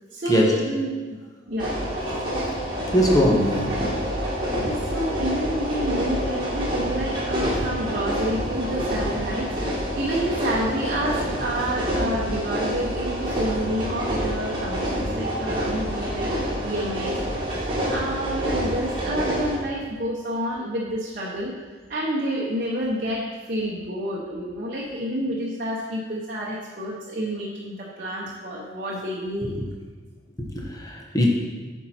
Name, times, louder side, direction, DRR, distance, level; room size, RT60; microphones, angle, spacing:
voice 1, 0.1-1.2 1.5-1.7 4.6-17.2 17.6-21.5 21.9-29.5, equal, 45° right, -4 dB, 0.9 m, -29 dB
sound 1, 1.6-19.6, equal, 25° right, 1.7 m, -27 dB
voice 2, 2.9-3.9 30.4-31.3, equal, 20° left, 0 dB, 1.0 m, -21 dB
8.2 x 4.5 x 4.3 m, 1.4 s
head